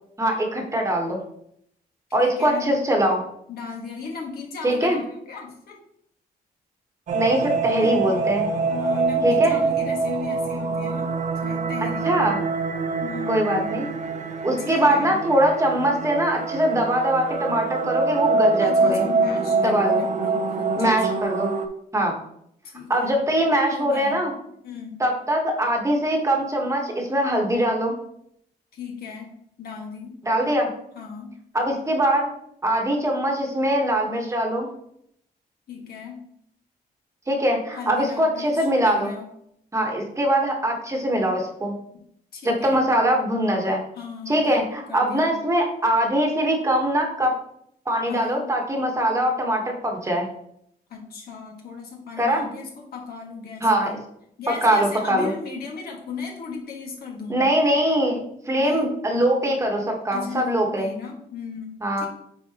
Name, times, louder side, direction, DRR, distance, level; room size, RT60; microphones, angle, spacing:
voice 1, 0.2-1.2 2.1-3.2 4.6-5.0 7.1-8.5 9.2-9.6 12.0-12.4 13.3-13.9 14.4-19.0 19.6-20.0 20.8-21.5 21.9-22.1 22.9-24.3 25.0-27.9 30.2-30.7 31.5-32.3 32.6-34.7 37.3-39.1 39.7-41.7 42.4-43.8 44.3-47.3 47.9-50.3 52.2-52.5 53.6-54.0 54.6-55.3 57.3-60.9 61.8-62.1, right 1 dB, 20° right, 1 dB, 1.2 m, -22 dB
voice 2, 2.2-2.7 3.5-5.8 7.8-8.0 8.7-12.2 13.0-13.6 14.6-15.1 18.6-21.4 22.6-23.3 23.7-24.2 24.6-25.0 28.7-29.3 29.6-30.1 30.9-31.3 35.7-36.2 37.7-39.3 42.3-42.8 44.0-45.3 48.0-48.5 50.9-54.0 54.4-57.4 58.6-59.0 60.1-62.1, left 5 dB, 75° left, 0 dB, 1.6 m, -36 dB
sound 1, 7.1-21.7, right 4 dB, 50° right, 0.6 m, -25 dB
8.7 x 4.1 x 2.9 m, 0.71 s
wide cardioid pair, 145°, 16 cm